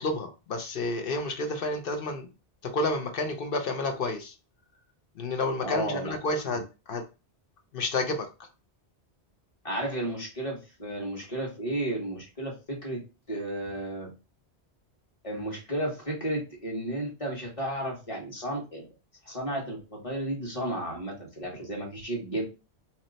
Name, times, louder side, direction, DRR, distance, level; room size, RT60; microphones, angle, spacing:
voice 1, 0.0-2.3 2.6-4.3 5.2-7.0 7.7-8.3, left 2 dB, 60° left, 5 dB, 0.9 m, -30 dB
voice 2, 5.6-6.1 6.4-6.6 9.6-13.0 13.3-14.1 15.2-18.9 19.2-22.4, right 1 dB, 30° left, -2 dB, 1.4 m, -33 dB
3.1 x 2.9 x 3.9 m, 0.30 s
omnidirectional pair, 1.1 m